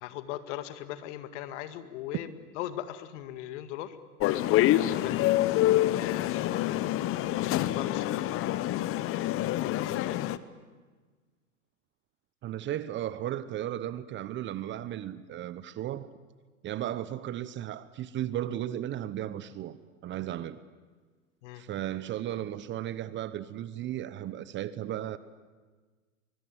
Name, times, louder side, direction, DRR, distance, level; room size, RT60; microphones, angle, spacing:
voice 1, 0.0-4.0 4.7-5.4 5.9-8.7 9.6-10.3 21.4-21.6, left 13 dB, 55° left, 2.1 m, -40 dB
sound 1, 4.2-10.4, left 14 dB, 30° left, 1.0 m, -26 dB
voice 2, 12.4-16.1 16.6-19.8 20.0-20.6 21.5-25.2, right 12 dB, 25° right, 0.9 m, -35 dB
24.0 x 23.5 x 9.5 m
hypercardioid pair, 110°, 44 cm